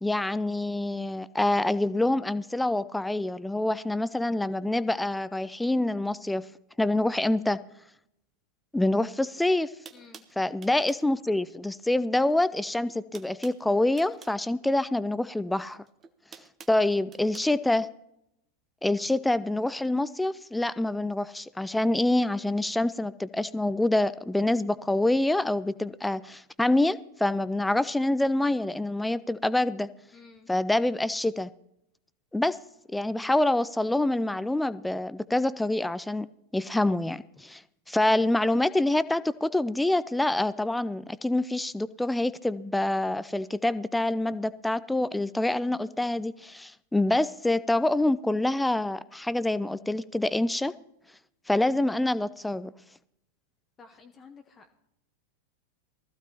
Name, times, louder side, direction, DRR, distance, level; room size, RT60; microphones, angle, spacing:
voice 1, 0.0-6.4 6.8-7.6 8.7-9.7 10.4-15.8 16.7-17.9 18.8-29.9 30.5-31.5 32.3-32.6 32.9-36.3 36.5-37.6 37.9-50.7 51.5-52.7, left 1 dB, 5° left, 0.4 m, -26 dB
sound 1, 9.3-9.4 9.8-11.1 12.3-12.6 12.8-14.4 15.6-17.5, right 6 dB, 25° right, 0.8 m, -50 dB
voice 2, 9.9-10.3 30.1-30.5 53.8-54.8, left 4 dB, 20° left, 0.9 m, -52 dB
19.0 x 14.5 x 2.9 m
figure-of-eight pair, 90°, 0 cm